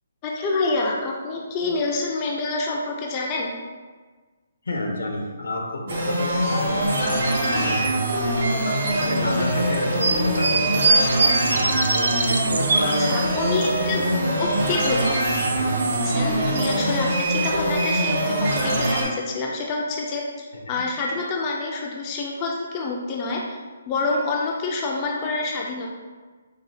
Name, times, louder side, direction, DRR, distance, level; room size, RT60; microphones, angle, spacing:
voice 1, 0.2-3.5 12.8-14.0 14.4-15.1 16.0-23.6 23.9-25.9, left 3 dB, 20° left, -1 dB, 0.3 m, -27 dB
voice 2, 4.6-8.0 8.5-10.9 11.9-13.1 20.5-20.9, left 1 dB, 85° left, 1 dB, 0.7 m, -30 dB
sound 1, 5.9-19.0, right 1 dB, 50° right, 1.0 m, -23 dB
sound 2, 8.9-13.5 13.8-14.9 15.2-17.8, right 3 dB, 80° right, 0.4 m, -25 dB
4.8 x 2.4 x 2.7 m, 1.4 s
hypercardioid pair, 170°, 0 cm